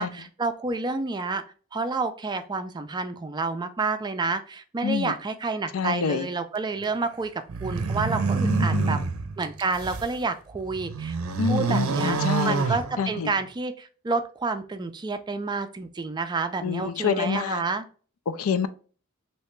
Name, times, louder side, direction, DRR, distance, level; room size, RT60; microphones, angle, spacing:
voice 1, 0.0-1.4 1.7-7.3 7.6-9.0 9.4-11.2 11.5-12.2 12.4-17.9, right 3 dB, 20° right, 0.3 m, -29 dB
voice 2, 4.8-5.1 5.7-6.3 8.4-9.0 11.4-12.6 13.0-13.3 16.6-17.6 18.3-18.7, left 6 dB, 80° left, 0.4 m, -27 dB
sound 1, 7.5-10.1 10.6-13.4, right 4 dB, 85° right, 0.5 m, -27 dB
3.2 x 2.8 x 3.0 m
head